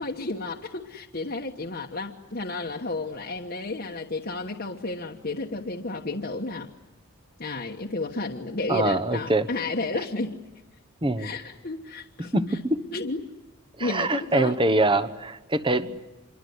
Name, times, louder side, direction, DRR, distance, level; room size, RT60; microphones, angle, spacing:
voice 1, 0.0-6.7 7.4-10.4 11.2-12.6 12.9-13.2 13.8-14.5, left 2 dB, 45° left, 0 dB, 1.2 m, -32 dB
voice 2, 8.7-9.5 11.0-11.3 12.2-12.8 13.8-16.0, right 2 dB, 20° right, 10 dB, 1.0 m, -24 dB
27.0 x 23.0 x 9.6 m, 1.0 s
head